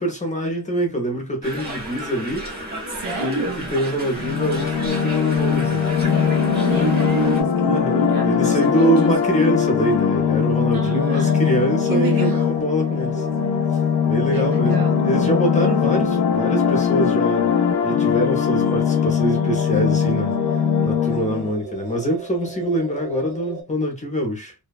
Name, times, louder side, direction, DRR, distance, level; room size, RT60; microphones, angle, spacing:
voice 1, 0.0-2.5 3.2-5.8 7.6-13.3 14.0-17.5 17.8-20.3 20.8-24.5, equal, 20° left, 0.6 m, -24 dB
sound 1, 1.4-7.4, right 1 dB, 25° right, 0.7 m, -32 dB
voice 2, 2.9-3.8 6.6-9.4 10.7-11.5 11.9-12.6 14.3-15.1, right 5 dB, 55° right, 0.8 m, -28 dB
sound 2, 4.1-21.5, left 7 dB, 70° left, 0.5 m, -20 dB
sound 3, 5.5-23.6, right 4 dB, 90° right, 1.0 m, -37 dB
2.6 x 2.2 x 2.2 m
wide cardioid pair, 170°, 41 cm